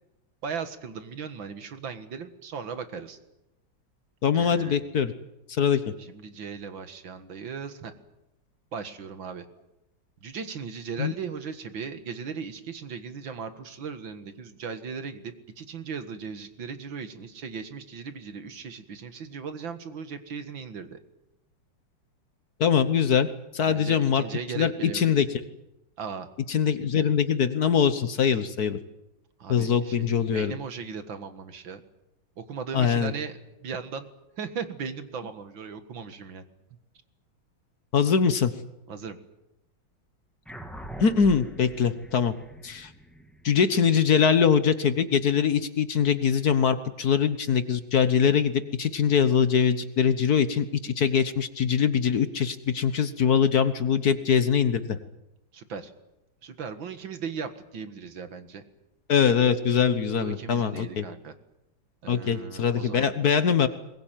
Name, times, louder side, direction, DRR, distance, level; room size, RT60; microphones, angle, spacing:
voice 1, 0.4-3.2 4.3-4.8 6.0-7.9 8.7-9.5 10.2-21.0 23.7-25.0 26.0-26.3 29.4-31.8 32.4-33.3 33.6-34.1 34.4-36.4 38.9-39.2 55.5-55.9 56.4-58.6 60.2-61.3 62.0-63.1, right 6 dB, 70° right, 9 dB, 2.4 m, -37 dB
voice 2, 4.2-5.1 5.5-5.9 11.0-11.1 22.6-23.3 23.5-24.2 24.5-25.3 26.5-28.8 29.5-30.5 32.7-33.1 37.9-38.5 41.0-42.3 42.6-42.9 43.4-55.0 59.1-61.0 62.1-63.7, left 7 dB, 55° left, 11 dB, 1.5 m, -23 dB
sound 1, 40.5-45.2, right 1 dB, ahead, 2.4 m, -43 dB
22.0 x 21.0 x 9.1 m, 0.91 s
omnidirectional pair, 2.2 m